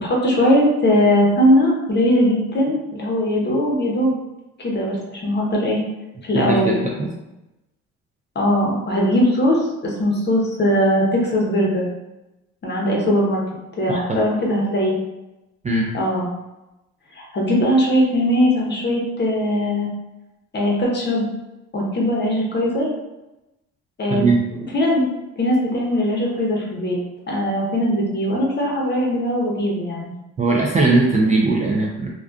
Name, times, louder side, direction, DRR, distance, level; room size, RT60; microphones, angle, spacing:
voice 1, 0.0-4.1 4.6-5.8 6.2-6.7 8.3-11.9 12.6-13.4 13.8-15.0 15.9-16.3 17.1-19.9 20.5-21.3 21.7-22.9 24.0-24.3 24.7-25.1 25.4-27.0 27.3-30.1, equal, 30° left, -2 dB, 0.9 m, -20 dB
voice 2, 6.3-7.1 13.9-14.2 15.6-15.9 24.1-24.4 30.4-32.1, right 3 dB, 20° right, -3 dB, 0.4 m, -19 dB
2.4 x 2.4 x 2.3 m, 0.96 s
supercardioid pair, 70°, 33 cm